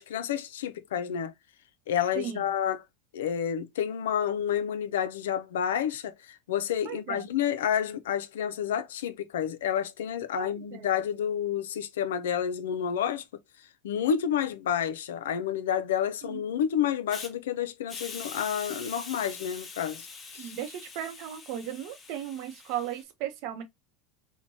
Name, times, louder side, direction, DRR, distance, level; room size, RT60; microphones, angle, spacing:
voice 1, 0.0-1.3 1.9-2.8 3.1-13.2 13.8-20.1 20.3-20.5, left 9 dB, 85° left, 0.4 m, -29 dB
voice 2, 6.8-7.2 10.4-10.9 16.2-16.4 20.3-23.6, right 10 dB, 60° right, 0.7 m, -36 dB
Hiss, 17.1-17.3 17.9-23.0, left 4 dB, 25° left, 0.7 m, -44 dB
3.0 x 2.1 x 2.5 m
supercardioid pair, 105°, 0 cm